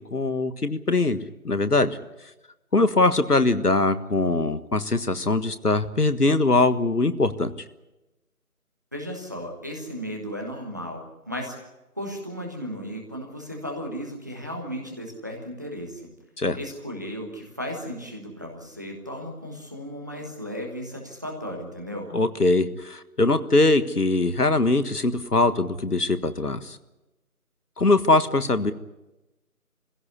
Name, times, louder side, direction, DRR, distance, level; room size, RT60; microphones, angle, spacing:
voice 1, 0.1-1.2 1.4-2.0 2.7-7.5 16.4-16.6 22.1-26.8 27.8-28.7, left 2 dB, 85° left, 12 dB, 1.6 m, -22 dB
voice 2, 8.9-11.6 12.0-16.1 16.5-22.1, equal, 10° right, 0 dB, 1.3 m, -35 dB
23.0 x 16.0 x 9.6 m, 1.0 s
figure-of-eight pair, 165°, 45 cm